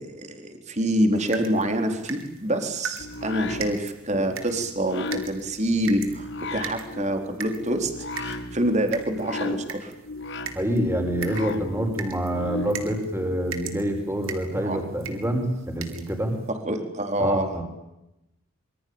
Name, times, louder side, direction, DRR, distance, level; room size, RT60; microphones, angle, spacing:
voice 1, 0.0-7.9 8.2-9.9 14.6-14.8 16.5-17.6, right 1 dB, 30° right, 5 dB, 4.2 m, -26 dB
sound 1, 1.1-16.5, right 5 dB, 65° right, 4.1 m, -41 dB
sound 2, 3.0-13.0, left 2 dB, 55° left, 2.3 m, -36 dB
voice 2, 10.5-16.4 17.2-17.6, equal, 10° right, 4 dB, 5.5 m, -26 dB
27.0 x 25.0 x 8.8 m, 0.88 s
head